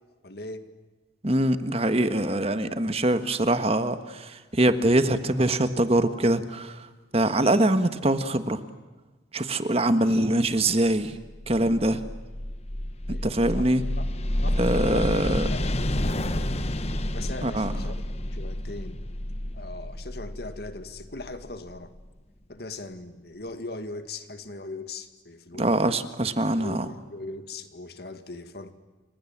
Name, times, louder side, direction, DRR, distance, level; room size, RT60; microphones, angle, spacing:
voice 1, 0.2-0.7 13.1-13.3 13.5-13.7 14.0-14.1 14.4-14.6 14.9-16.2 17.1-19.0 19.5-21.9 22.5-25.7 26.6-28.7, left 2 dB, 55° left, 2.1 m, -39 dB
voice 2, 1.2-6.9 7.1-8.6 9.3-11.2 11.5-12.0 13.2-13.8 14.6-15.5 17.4-17.7 25.6-26.9, right 1 dB, 30° right, 1.5 m, -23 dB
sound 1, 11.2-22.0, left 1 dB, 35° left, 1.3 m, -30 dB
30.0 x 26.0 x 7.4 m
head